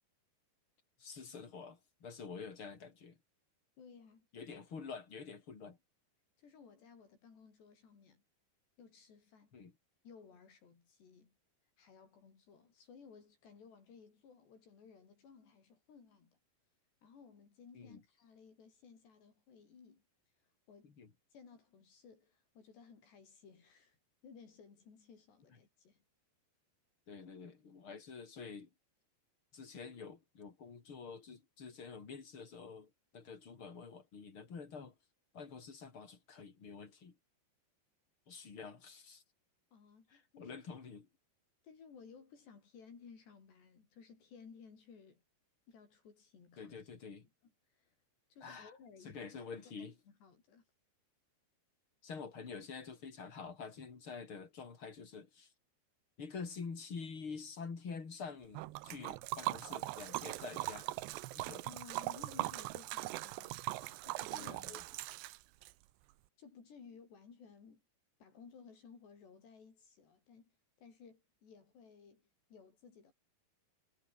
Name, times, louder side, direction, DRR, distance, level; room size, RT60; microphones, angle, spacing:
voice 1, 1.0-3.2 4.3-5.8 9.5-9.7 17.7-18.0 21.0-21.1 27.1-28.7 29.5-34.9 35.3-37.2 38.3-39.2 40.1-41.1 46.6-47.3 48.4-48.7 49.0-49.9 52.0-55.5 56.2-60.9 61.4-61.6 64.3-64.8, left 5 dB, 30° left, 3.8 m, -48 dB
voice 2, 3.8-4.3 6.4-8.2 8.8-9.6 10.0-11.3 11.8-16.4 17.0-20.0 20.4-21.0 21.3-26.0 39.7-40.6 41.6-45.2 45.7-46.8 47.2-47.3 47.7-48.0 48.3-49.5 49.8-50.7 61.6-64.9 66.4-67.8 68.2-70.5 70.8-73.1, left 6 dB, 75° left, 7.5 m, -58 dB
Liquid, 58.5-65.7, right 18 dB, 85° right, 3.1 m, -40 dB
omnidirectional pair, 4.9 m